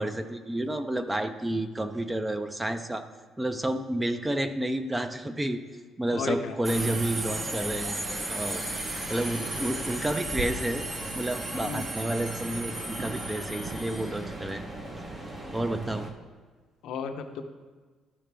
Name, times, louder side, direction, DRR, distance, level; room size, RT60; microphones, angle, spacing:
voice 1, 0.0-3.1 3.4-5.6 6.0-8.0 8.3-8.6 8.9-10.8 11.1-14.6 15.5-16.1, right 1 dB, 10° right, 9 dB, 0.5 m, -30 dB
voice 2, 6.1-6.5 11.6-11.8 16.8-17.4, left 5 dB, 75° left, 5 dB, 0.7 m, -33 dB
Subway metro underground, 6.6-16.1, right 1 dB, 30° right, 0.9 m, -34 dB
12.5 x 4.9 x 3.4 m, 1.4 s
cardioid pair, 110°, 0 cm